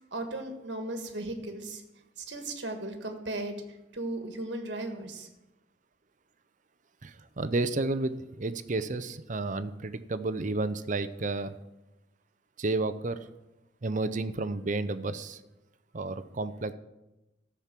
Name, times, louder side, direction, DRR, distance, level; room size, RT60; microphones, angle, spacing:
voice 1, 0.1-1.8 2.2-3.6 3.9-5.3, right 2 dB, 65° right, 5 dB, 1.7 m, -36 dB
voice 2, 7.0-11.5 12.6-13.2 13.8-15.4 15.9-16.7, right 2 dB, 40° right, 13 dB, 0.6 m, -31 dB
13.5 x 5.9 x 7.5 m, 0.99 s
head